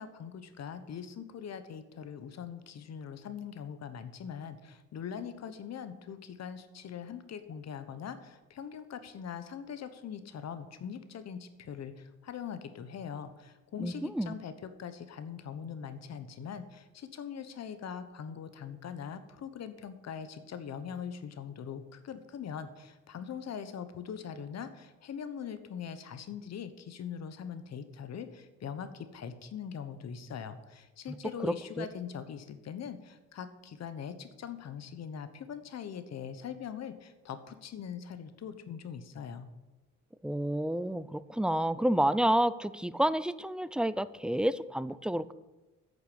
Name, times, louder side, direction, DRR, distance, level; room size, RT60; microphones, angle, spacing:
voice 1, 0.0-39.5, left 7 dB, 60° left, 11 dB, 1.2 m, -42 dB
voice 2, 13.8-14.3 31.4-31.9 40.2-45.3, right 1 dB, 5° right, 16 dB, 0.4 m, -29 dB
9.2 x 6.7 x 8.7 m, 1.1 s
cardioid pair, 90°, 30 cm